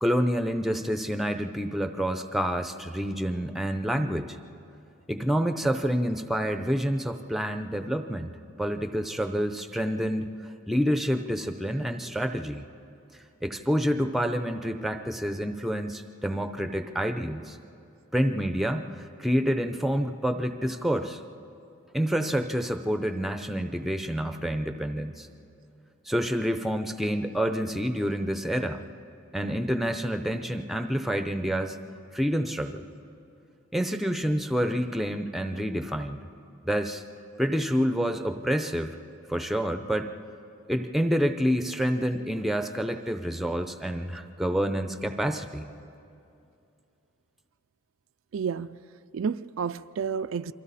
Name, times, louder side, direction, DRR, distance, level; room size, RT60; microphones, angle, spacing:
voice 1, 0.0-4.4 5.1-8.3 8.6-12.6 13.4-17.6 18.1-21.2 21.9-25.3 26.1-28.8 29.3-31.8 32.1-32.8 33.7-36.2 36.7-37.0 37.4-39.0 39.3-40.1 40.7-45.7, equal, ahead, 0.6 m, -28 dB
voice 2, 48.3-48.8 49.1-50.5, right 6 dB, 70° right, 0.4 m, -30 dB
29.0 x 23.5 x 4.2 m
head